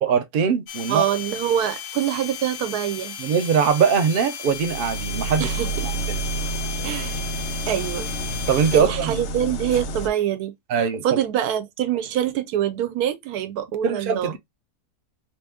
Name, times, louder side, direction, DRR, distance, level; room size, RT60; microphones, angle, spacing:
voice 1, 0.0-1.1 3.2-5.5 5.8-6.2 8.5-9.2 10.7-11.2 13.8-14.4, right 7 dB, 60° right, 0.5 m, -22 dB
sound 1, 0.7-8.8, left 8 dB, 90° left, 1.2 m, -35 dB
voice 2, 0.9-3.2 5.4-5.9 6.8-7.2 7.7-8.1 8.7-10.5 11.0-14.3, right 10 dB, 80° right, 1.1 m, -25 dB
sound 2, 4.5-10.1, right 2 dB, 65° left, 0.7 m, -29 dB
2.9 x 2.9 x 3.4 m
omnidirectional pair, 1.6 m